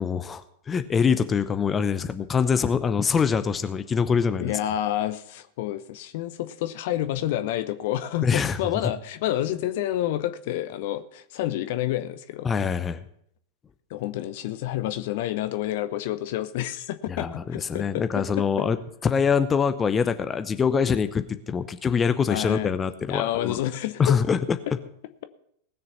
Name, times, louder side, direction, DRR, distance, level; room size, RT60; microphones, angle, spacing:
voice 1, 0.0-4.5 8.2-8.6 12.4-13.0 17.2-18.8 19.0-23.6 24.0-24.4, left 6 dB, 20° left, 11 dB, 0.8 m, -24 dB
voice 2, 4.4-12.5 13.9-18.7 22.3-22.7 23.1-24.2, left 13 dB, 50° left, 12 dB, 0.8 m, -29 dB
19.0 x 6.8 x 5.7 m, 0.69 s
figure-of-eight pair, 90°, 0 cm